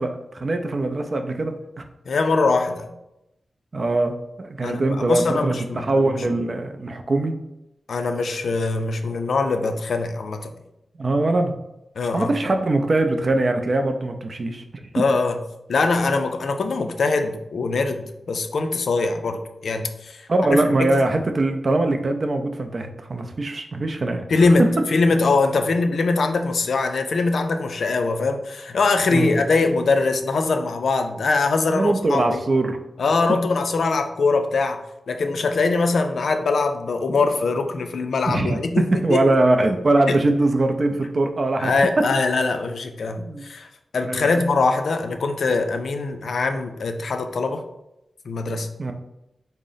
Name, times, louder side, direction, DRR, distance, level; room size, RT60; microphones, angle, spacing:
voice 1, 0.0-1.8 3.7-7.4 11.0-11.5 12.1-14.6 20.3-24.3 29.1-29.4 31.7-32.8 33.3-33.4 38.3-38.6 38.9-41.7 43.2-43.4 44.0-44.4 48.8-48.9, right 2 dB, 45° right, 6 dB, 0.4 m, -22 dB
voice 2, 2.1-2.9 4.6-6.2 7.9-10.5 12.0-12.3 14.9-15.4 15.7-20.9 24.3-32.4 33.0-39.2 40.1-40.2 41.6-43.7 43.9-47.6 48.3-48.7, left 3 dB, 75° left, 6 dB, 0.3 m, -22 dB
3.7 x 2.0 x 3.9 m, 0.89 s
wide cardioid pair, 100°, 0 cm